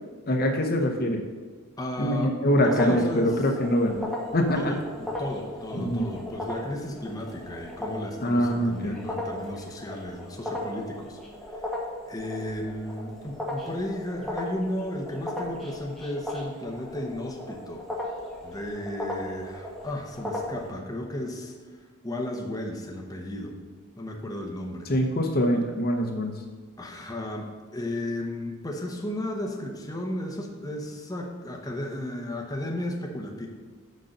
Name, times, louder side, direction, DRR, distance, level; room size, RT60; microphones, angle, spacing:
voice 1, 0.3-1.2 2.0-4.7 5.7-6.0 8.2-9.0 24.9-26.3, equal, 45° left, 3 dB, 0.9 m, -24 dB
voice 2, 1.8-3.4 4.5-11.2 11.5-11.7 12.1-18.1 18.4-23.6 24.0-24.9 26.8-33.5, left 1 dB, 15° left, 0 dB, 0.9 m, -34 dB
sound 1, 2.7-20.7, left 1 dB, ahead, 1.3 m, -37 dB
6.4 x 5.5 x 6.5 m, 1.5 s
head